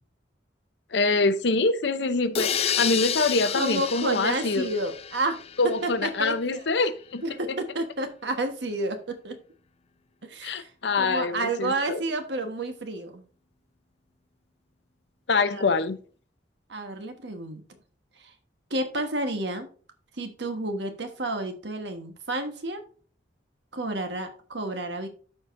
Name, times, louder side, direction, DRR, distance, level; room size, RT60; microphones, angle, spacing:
voice 1, 0.9-4.7 5.6-7.2 7.5-7.6 10.4-12.0 15.3-16.0, left 3 dB, 65° left, 0.7 m, -25 dB
sound 1, 2.3-6.1, left 8 dB, 35° left, 0.4 m, -30 dB
voice 2, 3.4-5.4 5.8-6.7 7.2-9.4 10.2-10.7 11.0-13.2 15.5-15.8 16.7-17.6 18.2-18.3 18.7-19.7 20.2-22.8 23.7-25.1, right 2 dB, 65° right, 1.3 m, -30 dB
13.0 x 4.8 x 2.6 m
head